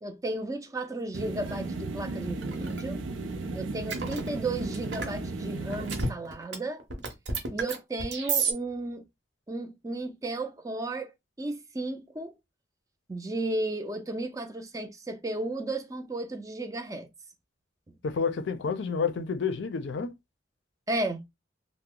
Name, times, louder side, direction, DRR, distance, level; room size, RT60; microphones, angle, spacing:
voice 1, 0.0-3.0 3.5-6.8 7.5-9.0 9.5-11.1 11.4-12.3 13.1-17.1 20.9-21.2, right 2 dB, 20° right, 0.4 m, -34 dB
sound 1, 1.1-6.1, right 3 dB, 90° right, 0.5 m, -35 dB
sound 2, 1.5-1.6 2.4-2.8 3.9-5.1 5.7-6.5 6.8-8.5, right 5 dB, 60° right, 0.9 m, -31 dB
voice 2, 18.0-20.1, left 5 dB, 65° left, 0.4 m, -29 dB
2.8 x 2.0 x 3.7 m
head